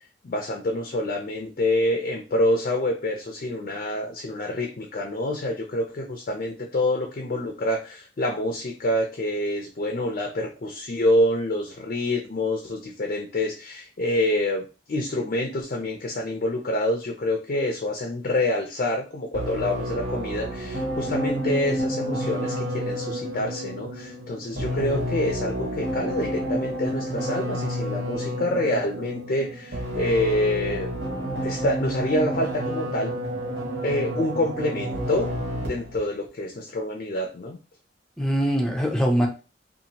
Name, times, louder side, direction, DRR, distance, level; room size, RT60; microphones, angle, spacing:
voice 1, 0.2-14.6 14.9-30.9 31.4-33.2 33.8-37.6, left 1 dB, 50° left, 2 dB, 0.5 m, -27 dB
sound 1, 19.3-36.0, equal, 70° right, 1.1 m, -30 dB
voice 2, 24.5-25.0 38.2-39.3, equal, 5° left, 1 dB, 0.6 m, -23 dB
2.7 x 2.5 x 2.8 m, 0.33 s
head